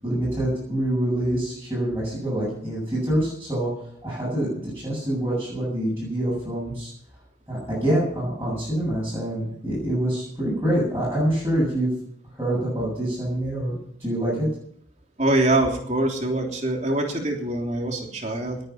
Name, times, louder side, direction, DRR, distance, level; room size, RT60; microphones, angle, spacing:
voice 1, 0.0-3.7 4.0-6.9 7.5-11.9 12.3-14.5, right 1 dB, 15° right, -8 dB, 7.9 m, -26 dB
voice 2, 15.2-18.6, right 1 dB, 40° right, 1 dB, 3.4 m, -24 dB
20.5 x 9.2 x 5.9 m, 0.65 s
head